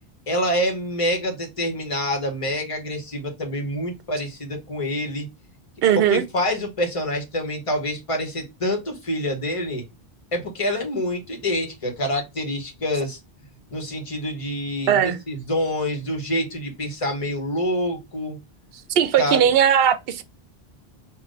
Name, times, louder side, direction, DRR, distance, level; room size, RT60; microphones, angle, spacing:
voice 1, 0.3-5.3 5.9-9.8 10.3-13.2 13.7-18.4 19.2-19.4, left 1 dB, 35° left, 1.1 m, -26 dB
voice 2, 5.8-6.2 14.9-15.2 19.0-20.2, right 9 dB, 75° right, 0.8 m, -18 dB
3.7 x 2.5 x 3.7 m
omnidirectional pair, 1.0 m